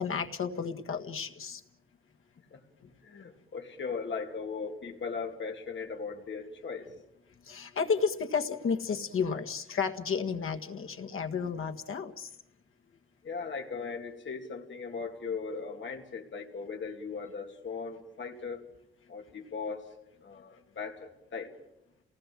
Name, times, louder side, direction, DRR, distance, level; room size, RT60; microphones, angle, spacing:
voice 1, 0.0-1.6 7.5-12.3, left 6 dB, 90° left, 5 dB, 1.7 m, -32 dB
voice 2, 3.0-6.9 13.2-18.6 19.1-19.9 20.2-21.5, left 5 dB, 65° left, 2 dB, 2.6 m, -38 dB
29.5 x 19.0 x 7.6 m, 0.85 s
wide cardioid pair, 180°, 21 cm